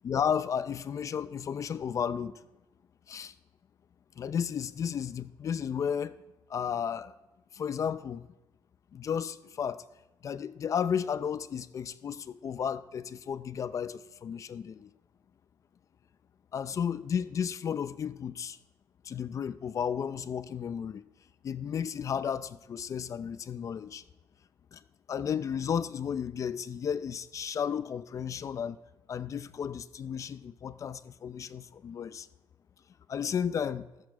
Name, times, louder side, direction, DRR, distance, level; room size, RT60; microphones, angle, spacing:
voice 1, 0.0-2.4 3.1-3.3 4.2-6.2 6.5-7.1 7.5-8.3 8.9-9.8 10.2-14.9 16.5-18.6 19.0-21.0 21.4-24.0 24.7-24.8 25.1-28.8 29.1-32.3 33.1-33.9, left 7 dB, 40° left, 0.5 m, -33 dB
14.0 x 13.5 x 4.8 m
cardioid pair, 130°, 8 cm